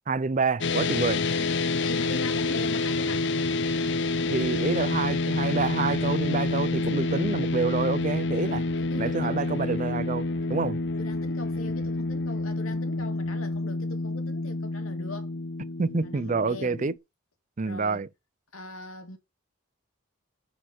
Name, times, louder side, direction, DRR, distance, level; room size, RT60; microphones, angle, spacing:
voice 1, 0.1-1.2 4.3-8.6 9.0-10.8 15.8-16.9 17.6-18.1, right 4 dB, 35° right, 0.5 m, -28 dB
sound 1, 0.6-17.0, left 3 dB, 55° left, 0.7 m, -28 dB
voice 2, 1.8-3.3 8.4-9.4 10.5-15.3 16.0-16.8 17.6-18.1 18.5-19.2, left 2 dB, 85° left, 2.0 m, -41 dB
9.6 x 4.3 x 6.0 m
head